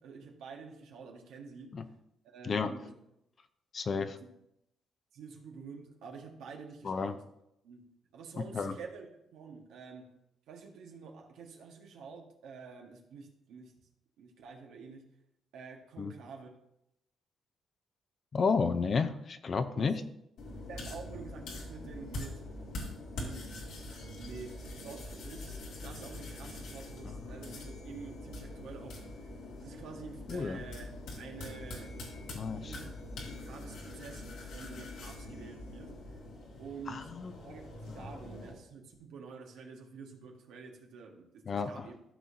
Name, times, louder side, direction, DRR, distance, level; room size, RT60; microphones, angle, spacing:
voice 1, 0.0-1.7 2.2-2.9 3.9-4.3 5.1-7.2 7.6-10.1 10.5-13.7 14.2-15.1 15.5-16.5 19.7-20.0 20.7-22.4 23.2-23.5 24.2-29.1 29.6-32.9 33.2-35.9 36.6-37.1 37.4-42.0, right 5 dB, 85° right, 1 dB, 1.6 m, -48 dB
voice 2, 3.7-4.2 6.8-7.2 8.4-8.7 16.0-16.1 18.3-19.9 27.0-27.2 30.3-30.6 32.3-32.8 36.9-37.3 38.0-38.1 41.5-41.9, left 5 dB, 45° left, 10 dB, 0.7 m, -32 dB
sound 1, 20.4-38.5, left 1 dB, 80° left, 2.5 m, -44 dB
14.0 x 6.3 x 2.8 m, 0.82 s
cardioid pair, 90°, 0 cm